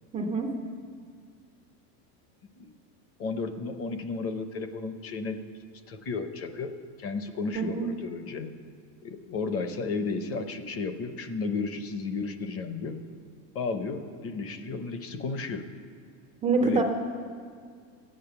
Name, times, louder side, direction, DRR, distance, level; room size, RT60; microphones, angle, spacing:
voice 1, 0.1-0.5 7.5-7.9 16.4-16.8, right 3 dB, 15° right, 1 dB, 0.3 m, -25 dB
voice 2, 3.2-5.4 5.9-6.7 7.0-8.5 9.0-13.0 13.5-15.6 16.6-16.8, left 4 dB, 30° left, 9 dB, 0.7 m, -33 dB
14.5 x 8.8 x 6.8 m, 2.1 s
supercardioid pair, 155°, 49 cm